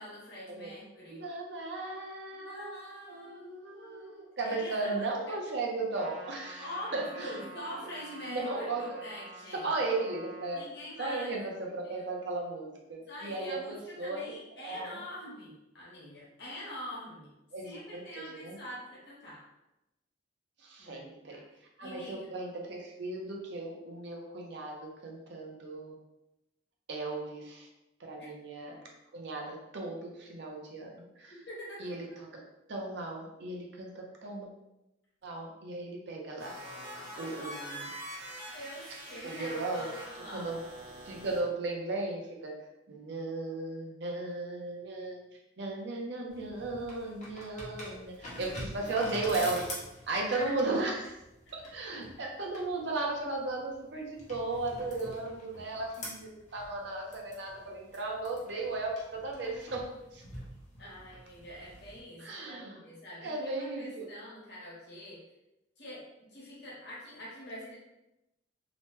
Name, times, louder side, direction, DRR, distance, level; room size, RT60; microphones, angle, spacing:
voice 1, 0.0-1.2 2.3-5.3 6.6-9.7 10.5-11.4 11.8-12.0 13.1-17.3 17.6-19.4 20.8-21.0 21.3-21.4 21.8-22.3 31.5-31.9 38.5-40.5 48.3-48.9 50.3-50.5 60.8-65.2 65.8-67.8, left 1 dB, 60° left, -6 dB, 1.2 m, -45 dB
voice 2, 1.1-7.4 7.8-7.9 8.2-9.0 9.6-10.6 11.0-14.2 14.5-15.0 17.5-18.6 20.6-21.4 21.8-26.0 26.9-27.7 28.0-28.8 29.1-31.3 31.8-32.4 32.7-34.5 35.2-36.6 37.2-37.9 39.2-39.9 40.3-40.6 41.0-42.5 42.9-45.2 45.6-49.7 50.1-51.1 51.5-60.2 62.2-62.8 63.2-64.1, right 2 dB, 65° right, 0 dB, 0.6 m, -36 dB
Trumpet, 5.9-10.6, right 2 dB, 25° right, 1.0 m, -49 dB
sound 1, 36.4-41.4, right 1 dB, 45° right, 1.1 m, -44 dB
sound 2, 46.3-62.0, left 1 dB, 40° left, 0.8 m, -46 dB
2.9 x 2.1 x 3.1 m, 0.92 s
head